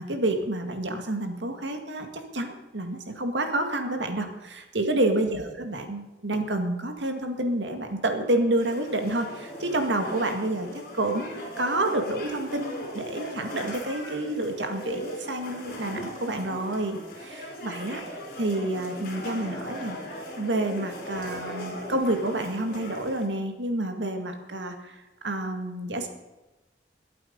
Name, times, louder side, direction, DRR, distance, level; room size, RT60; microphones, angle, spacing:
voice 1, 0.0-18.0 18.4-20.0 20.4-24.9 25.2-26.1, right 1 dB, 85° right, 5 dB, 2.1 m, -29 dB
sound 1, 8.6-23.3, equal, 50° left, 3.7 m, -39 dB
22.0 x 8.4 x 5.3 m, 1.1 s
head